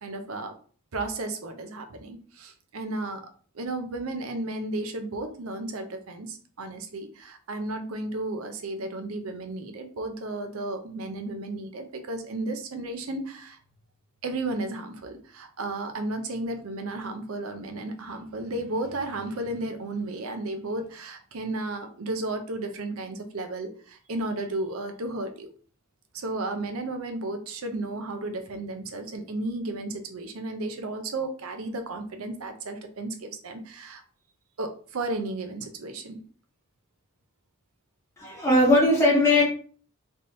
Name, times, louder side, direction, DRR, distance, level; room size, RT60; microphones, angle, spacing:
voice 1, 0.0-0.5 0.9-3.2 3.5-13.6 14.2-25.5 26.1-34.0 34.6-36.2, right 2 dB, 75° right, 6 dB, 0.6 m, -33 dB
voice 2, 38.2-39.4, left 1 dB, 15° left, -5 dB, 1.2 m, -19 dB
3.4 x 2.8 x 2.7 m, 0.43 s
head